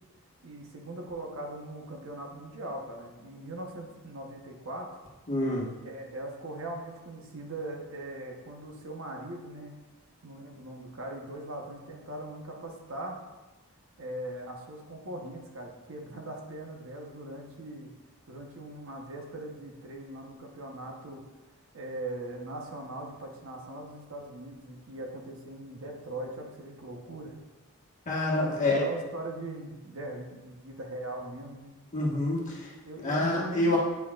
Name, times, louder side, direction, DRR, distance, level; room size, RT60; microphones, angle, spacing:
voice 1, 0.4-4.9 5.8-9.7 10.2-13.2 14.0-17.9 18.3-21.2 21.7-27.4 28.4-31.7 32.8-33.8, right 1 dB, 65° right, 1 dB, 1.0 m, -40 dB
voice 2, 5.3-5.7 28.0-28.8 31.9-32.7 33.0-33.8, left 2 dB, 35° left, -4 dB, 1.4 m, -27 dB
8.3 x 6.3 x 2.4 m, 1.2 s
head